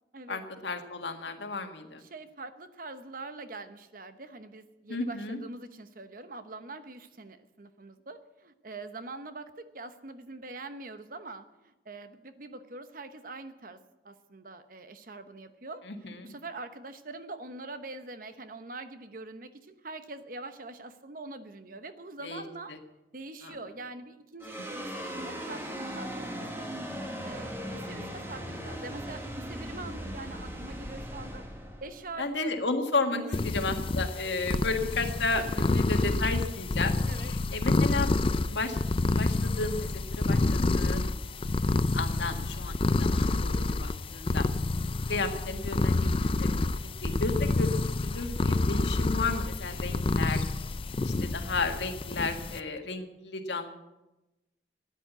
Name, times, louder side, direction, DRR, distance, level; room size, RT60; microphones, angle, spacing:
voice 1, 0.3-2.0 4.9-5.4 15.9-16.3 22.2-22.4 23.4-23.6 32.2-33.2 33.5-41.2 41.9-44.5 45.1-46.5 47.0-50.4 51.0-53.7, left 3 dB, 80° left, 5 dB, 1.7 m, -33 dB
voice 2, 2.0-13.8 14.0-22.7 23.1-26.7 27.2-31.4 31.8-32.7 33.1-33.4 35.3-35.4 35.7-35.8 37.1-37.3, right 3 dB, 50° right, 10 dB, 1.0 m, -44 dB
sound 1, 24.4-32.9, equal, 15° right, 1.6 m, -39 dB
sound 2, 33.3-52.6, left 2 dB, 30° left, 0.4 m, -28 dB
14.0 x 10.0 x 8.1 m, 1.0 s
head